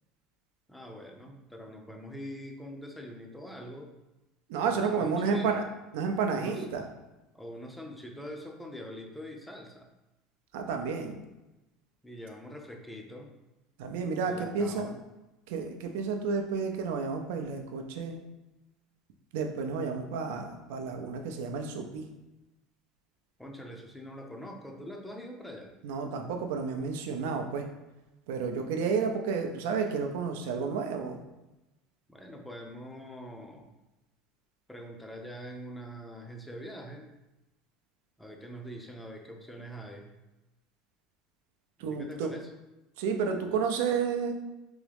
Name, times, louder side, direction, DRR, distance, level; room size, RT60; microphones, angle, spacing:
voice 1, 0.7-3.9 4.7-5.6 6.4-6.7 7.3-9.9 12.0-13.3 14.3-14.9 23.4-25.7 32.1-33.7 34.7-37.1 38.2-40.1 41.9-42.5, equal, 5° left, 2 dB, 0.4 m, -44 dB
voice 2, 4.5-5.6 5.9-6.9 10.5-11.2 13.8-14.9 15.5-18.2 19.3-22.1 25.8-27.6 28.3-31.2 41.8-42.3 43.0-44.3, right 5 dB, 80° right, 4 dB, 0.5 m, -31 dB
3.5 x 3.0 x 3.4 m, 1.0 s
cardioid pair, 160°, 0 cm